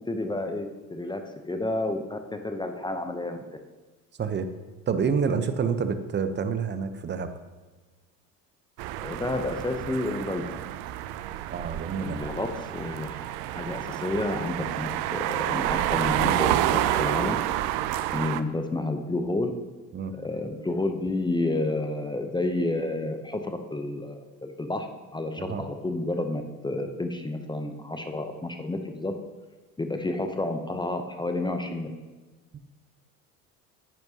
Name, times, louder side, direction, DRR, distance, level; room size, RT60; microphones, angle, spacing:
voice 1, 0.1-3.4 9.0-10.6 12.0-13.3 13.5-17.4 18.1-19.5 20.1-29.1 29.8-31.9, left 2 dB, 10° left, 6 dB, 0.7 m, -30 dB
voice 2, 4.9-7.3 11.5-12.2 19.9-20.1 25.4-25.7 32.5-32.6, right 6 dB, 25° right, 10 dB, 0.8 m, -28 dB
sound 1, 8.8-18.4, right 13 dB, 55° right, 0.6 m, -29 dB
10.0 x 8.9 x 2.9 m, 1.3 s
hypercardioid pair, 75°, 46 cm